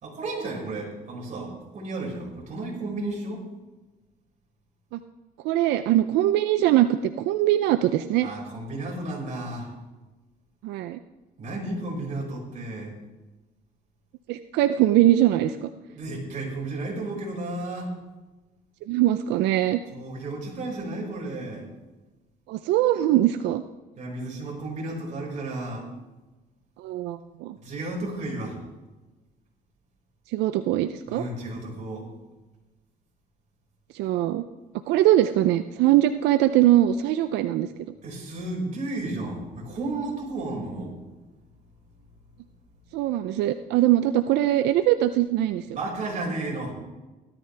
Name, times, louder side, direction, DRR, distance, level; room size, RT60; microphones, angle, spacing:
voice 1, 0.0-3.5 8.2-9.7 11.4-12.9 15.9-17.9 19.9-21.7 24.0-25.9 27.6-28.6 31.1-32.1 38.0-41.0 45.7-46.7, right 2 dB, 45° right, -2 dB, 5.3 m, -33 dB
voice 2, 5.4-8.3 10.6-11.0 14.3-15.7 18.9-19.8 22.5-23.6 26.8-27.5 30.3-31.2 33.9-34.4 34.9-37.7 42.9-45.7, right 13 dB, 85° right, 10 dB, 0.5 m, -22 dB
17.0 x 12.5 x 3.4 m, 1.1 s
cardioid pair, 110°, 17 cm